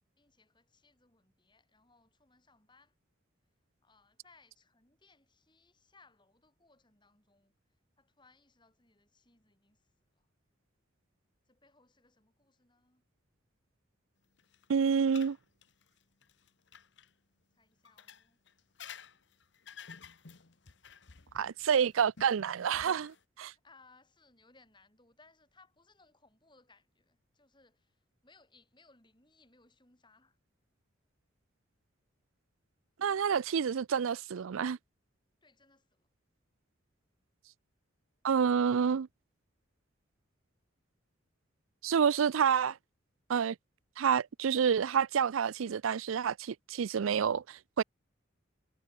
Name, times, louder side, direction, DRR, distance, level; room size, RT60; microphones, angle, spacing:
voice 1, 0.2-2.9 3.8-7.5 8.0-10.3 11.5-13.0 17.5-18.4 23.5-30.4 35.4-36.1, left 3 dB, 25° left, 6.4 m, -65 dB
sound 1, 14.4-17.1 17.8-23.2, left 7 dB, 60° left, 1.1 m, -53 dB
voice 2, 14.7-15.4 21.3-23.5 33.0-34.8 38.2-39.1 41.8-42.8 43.3-43.6 44.0-47.8, right 7 dB, 85° right, 0.4 m, -28 dB
head